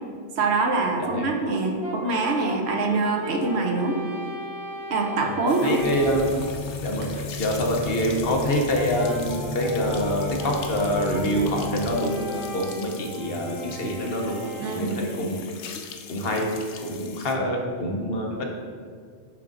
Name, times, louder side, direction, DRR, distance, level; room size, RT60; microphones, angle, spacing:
voice 1, 0.4-4.0 4.9-5.8 14.6-15.0, right 3 dB, 70° right, 2 dB, 1.0 m, -24 dB
voice 2, 1.0-1.4 5.1-6.3 6.8-15.4 16.1-16.5 16.8-18.4, equal, 60° left, 1 dB, 1.0 m, -26 dB
Brass instrument, 1.8-6.4 8.7-15.1, left 1 dB, 25° right, 1.7 m, -37 dB
sound 1, 5.5-17.4, left 7 dB, 85° left, 0.9 m, -42 dB
sound 2, 5.8-11.9, left 2 dB, 40° right, 1.1 m, -35 dB
9.2 x 3.6 x 3.8 m, 2.1 s
omnidirectional pair, 1.2 m